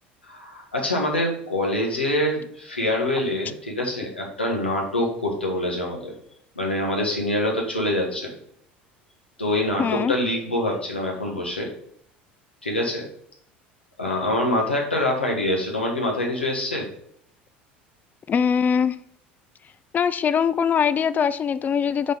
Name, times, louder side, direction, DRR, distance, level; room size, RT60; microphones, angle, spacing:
voice 1, 0.3-6.1 6.6-8.3 9.4-11.7 12.6-13.0 14.0-16.9, left 1 dB, 90° left, 1.3 m, -25 dB
voice 2, 9.8-10.1 18.3-19.0 19.9-22.1, left 7 dB, 30° left, 0.4 m, -22 dB
5.0 x 4.3 x 5.2 m
figure-of-eight pair, 70°, 6 cm